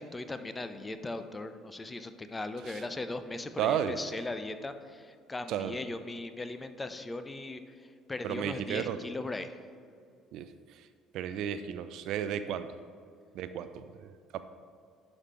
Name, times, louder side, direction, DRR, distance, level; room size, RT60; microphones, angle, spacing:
voice 1, 0.0-7.6 8.1-9.5, left 2 dB, 20° left, 10 dB, 0.6 m, -38 dB
voice 2, 3.6-4.0 5.5-5.8 8.2-9.0 10.3-10.5 11.1-12.8 13.3-14.4, right 9 dB, 60° right, 11 dB, 0.4 m, -33 dB
11.5 x 5.3 x 3.2 m, 2.3 s
figure-of-eight pair, 55°, 0 cm